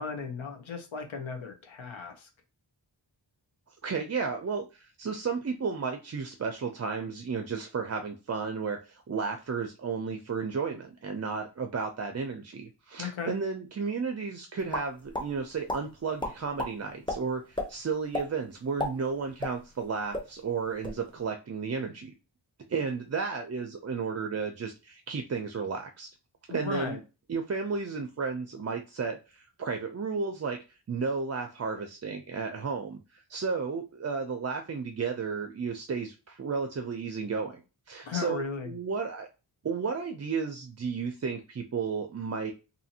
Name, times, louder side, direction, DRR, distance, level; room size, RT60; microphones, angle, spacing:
voice 1, 0.0-2.3 13.0-13.3 26.5-27.0 38.1-38.7, left 5 dB, 85° left, 5 dB, 0.8 m, -36 dB
voice 2, 3.8-22.1 22.7-26.1 26.5-27.0 27.3-30.6 30.9-37.6 37.9-39.3 39.6-42.5, right 5 dB, 35° right, 5 dB, 0.4 m, -33 dB
sound 1, 14.7-15.3 15.7-15.8 16.2-16.7 17.1-17.2 17.5-17.7 18.1-18.3 18.6-19.9 20.1-20.3 20.6-21.0, left 1 dB, 10° left, 0.7 m, -32 dB
2.7 x 2.5 x 2.7 m, 0.30 s
wide cardioid pair, 65°, 46 cm